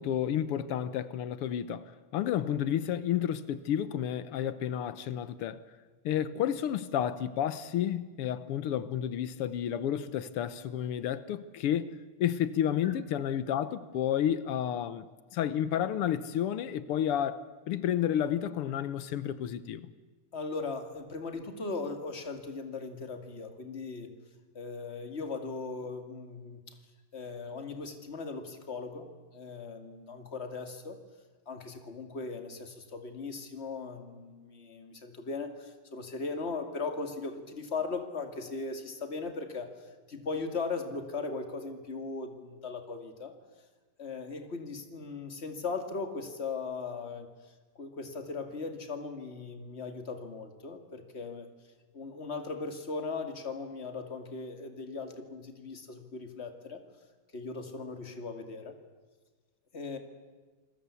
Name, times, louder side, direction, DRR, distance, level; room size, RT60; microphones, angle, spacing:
voice 1, 0.0-1.8 2.1-5.6 6.1-12.0 12.2-15.1 15.3-19.9, left 10 dB, 90° left, 1.9 m, -31 dB
voice 2, 20.3-24.1 24.5-26.7 27.1-31.0 31.5-39.7 40.1-43.3 44.0-47.3 47.8-51.5 51.9-56.8 57.3-58.8 59.7-60.0, left 4 dB, 30° left, 2.4 m, -38 dB
28.0 x 20.5 x 8.4 m
omnidirectional pair, 2.4 m